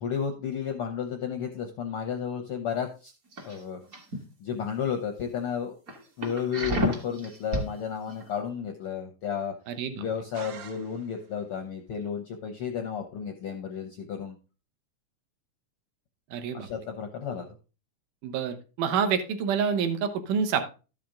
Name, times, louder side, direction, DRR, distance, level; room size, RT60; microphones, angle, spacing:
voice 1, 0.0-3.1 3.4-3.8 4.4-5.7 6.2-9.5 10.0-14.3 16.5-17.5, left 7 dB, 75° left, 5 dB, 1.3 m, -32 dB
sound 1, 3.3-4.2 4.6-4.9 5.4-5.5 5.9-7.7 8.1-8.2, equal, 35° right, 1.5 m, -30 dB
voice 2, 9.7-10.0 16.3-16.7 18.2-20.6, right 6 dB, 85° right, 7 dB, 2.6 m, -27 dB
sound 2, 10.3-11.4, right 7 dB, 65° right, 2.2 m, -46 dB
12.5 x 5.9 x 3.7 m, 0.32 s
omnidirectional pair, 3.6 m